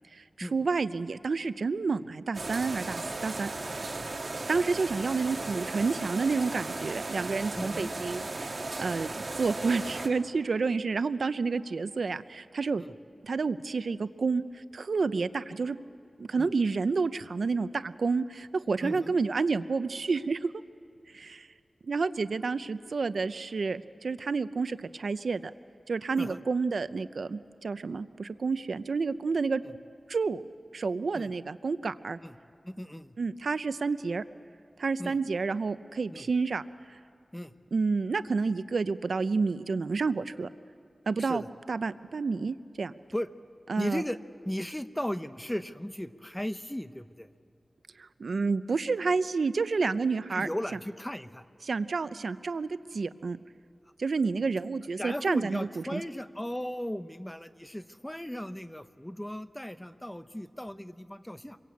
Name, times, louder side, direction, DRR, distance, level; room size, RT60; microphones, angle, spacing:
voice 1, 0.1-3.5 4.5-12.8 13.2-15.8 16.2-20.5 21.1-21.5 21.8-25.5 25.9-29.6 30.1-30.4 30.7-32.2 33.2-34.2 34.8-37.0 37.7-40.5 41.1-41.4 41.7-42.9 43.7-44.0 48.0-50.5 51.6-53.4 54.0-56.0, right 4 dB, 85° right, 13 dB, 0.6 m, -30 dB
sound 1, 2.3-10.1, right 2 dB, 50° right, 2.1 m, -36 dB
voice 2, 7.6-7.9 9.0-9.2 12.8-12.9 16.4-16.5 18.8-19.1 26.2-26.4 31.1-31.3 32.2-32.4 32.6-33.2 35.0-35.2 36.1-36.3 37.3-37.5 41.2-41.5 43.1-43.3 43.8-44.2 44.4-47.3 50.3-51.4 54.5-54.6 55.0-61.6, equal, 10° left, 10 dB, 0.9 m, -36 dB
27.5 x 22.5 x 8.5 m, 2.4 s
wide cardioid pair, 70°, 0 cm